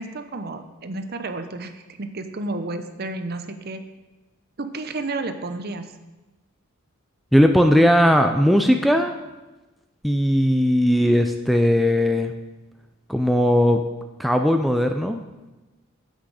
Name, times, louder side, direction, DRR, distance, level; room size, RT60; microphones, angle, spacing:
voice 1, 0.0-3.8 4.6-5.9, right 2 dB, 50° right, 8 dB, 0.8 m, -31 dB
voice 2, 7.3-9.1 10.0-12.3 13.1-13.8 14.2-15.2, equal, ahead, 5 dB, 0.4 m, -18 dB
10.0 x 8.3 x 4.9 m, 1.1 s
head